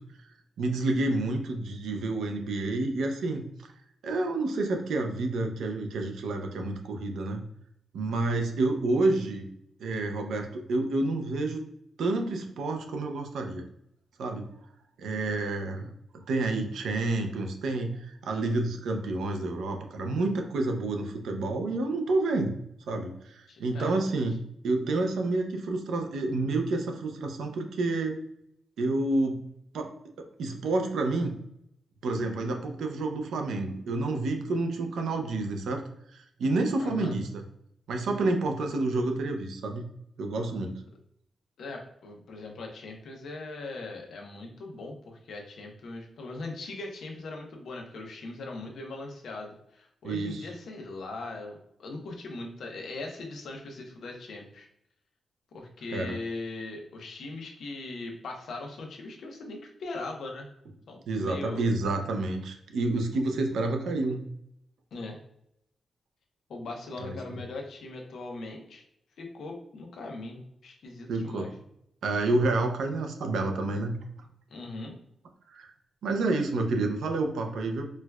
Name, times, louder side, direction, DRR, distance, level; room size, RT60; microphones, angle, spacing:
voice 1, 0.6-3.4 4.0-7.4 7.9-9.5 9.8-11.6 12.0-13.6 14.2-14.5 15.0-22.6 22.9-24.3 24.6-28.1 28.8-29.5 29.7-31.4 32.0-35.8 36.1-37.3 37.9-39.8 40.2-40.8 50.0-50.5 55.9-56.2 61.1-64.3 67.0-67.2 71.1-71.5 72.0-74.0 75.5-75.7 76.0-77.9, right 2 dB, 85° right, 4 dB, 0.5 m, -29 dB
voice 2, 23.5-23.9 36.8-37.1 41.6-54.7 55.5-60.5 60.9-61.6 64.9-65.2 66.5-68.8 69.2-71.5 74.5-75.0, left 2 dB, 65° left, 1 dB, 0.7 m, -40 dB
4.4 x 2.2 x 2.2 m, 0.75 s
wide cardioid pair, 170°, 0 cm